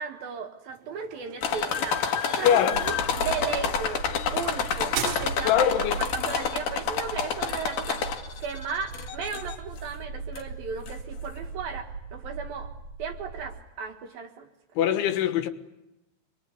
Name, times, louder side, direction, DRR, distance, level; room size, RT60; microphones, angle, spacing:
voice 1, 0.0-4.1 4.3-8.0 8.4-12.7 13.0-14.5, right 6 dB, 60° right, 2.9 m, -35 dB
sound 1, 0.7-5.8, right 11 dB, 80° right, 3.7 m, -39 dB
sound 2, 1.4-8.4 8.9-9.6 10.4-10.5 10.9-11.0, left 7 dB, 55° left, 2.8 m, -29 dB
voice 2, 2.4-2.8 5.5-6.0 14.8-15.5, left 10 dB, 80° left, 3.7 m, -22 dB
sound 3, 2.7-13.6, right 3 dB, 45° right, 2.7 m, -39 dB
26.5 x 22.5 x 9.7 m
omnidirectional pair, 5.4 m